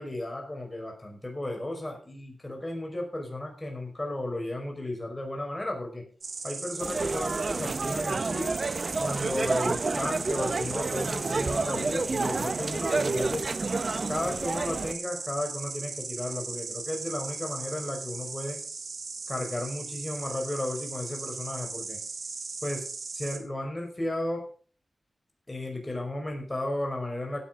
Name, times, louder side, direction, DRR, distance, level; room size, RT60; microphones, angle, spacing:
voice 1, 0.0-6.1 6.4-8.5 9.0-13.4 14.1-18.6 19.3-22.0 22.6-22.8 23.1-24.5 25.5-27.4, left 1 dB, 20° left, 2 dB, 5.2 m, -34 dB
Insect, 6.2-23.4, right 4 dB, 70° right, 3.0 m, -38 dB
sound 1, 6.8-14.9, right 3 dB, 50° right, 1.0 m, -30 dB
16.5 x 10.0 x 3.9 m, 0.40 s
wide cardioid pair, 100°, 0 cm